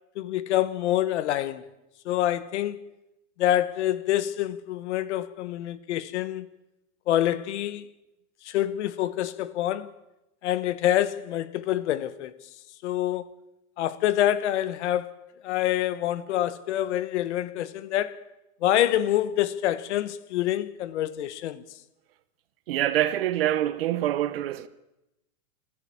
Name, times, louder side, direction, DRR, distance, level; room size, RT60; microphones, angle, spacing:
voice 1, 0.2-1.6 2.0-2.8 3.4-6.5 7.1-7.8 8.4-9.9 10.4-12.3 12.8-13.3 13.8-15.1 15.4-18.2 18.6-21.6, left 12 dB, 50° left, 1.1 m, -26 dB
voice 2, 22.7-24.7, right 13 dB, 40° right, 0.8 m, -25 dB
29.0 x 11.0 x 8.6 m
supercardioid pair, 175°, 46 cm